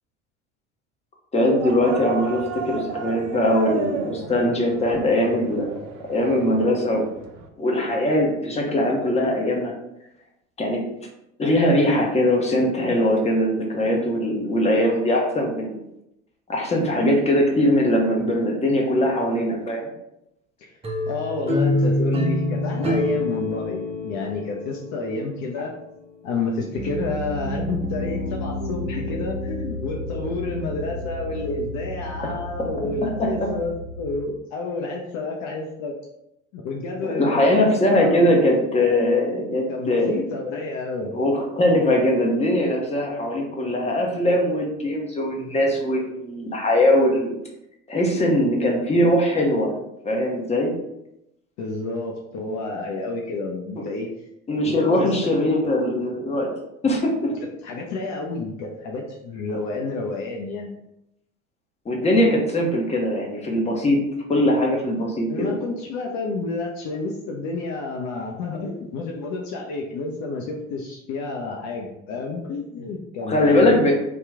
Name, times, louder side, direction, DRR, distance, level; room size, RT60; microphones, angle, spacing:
voice 1, 1.3-5.8 6.1-7.0 7.6-9.7 10.6-10.8 11.4-15.8 16.5-19.9 32.2-32.7 33.2-33.5 37.0-40.2 41.1-47.3 47.9-49.7 50.0-50.7 53.8-53.9 54.5-56.5 56.8-57.3 61.9-64.0 64.3-65.6 73.3-73.9, left 1 dB, 15° left, 0 dB, 0.9 m, -21 dB
sound 1, 1.6-7.5, right 4 dB, 80° right, 0.5 m, -33 dB
sound 2, 20.8-25.7, left 1 dB, 15° right, 0.7 m, -25 dB
voice 2, 21.1-25.7 26.2-35.9 36.5-38.3 39.7-41.1 51.6-54.1 54.6-55.1 57.4-60.7 65.3-73.9, left 3 dB, 50° left, 0 dB, 0.6 m, -30 dB
Piano, 26.7-34.2, left 1 dB, 50° right, 1.0 m, -32 dB
2.9 x 2.3 x 3.5 m, 0.83 s
hypercardioid pair, 70°, 38 cm